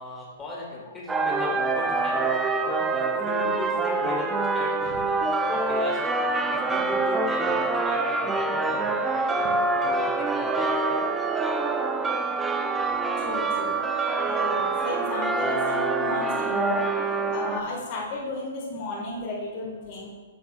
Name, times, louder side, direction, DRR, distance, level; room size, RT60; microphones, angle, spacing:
voice 1, 0.0-6.0 6.5-11.0, left 2 dB, 15° left, -3 dB, 1.8 m, -39 dB
sound 1, 1.1-17.6, right 3 dB, 10° right, 0.4 m, -25 dB
voice 2, 13.2-13.8 14.2-16.9 17.3-20.1, left 2 dB, 40° left, -6 dB, 1.4 m, -33 dB
9.2 x 5.5 x 2.2 m, 1.4 s
hypercardioid pair, 120°, 0 cm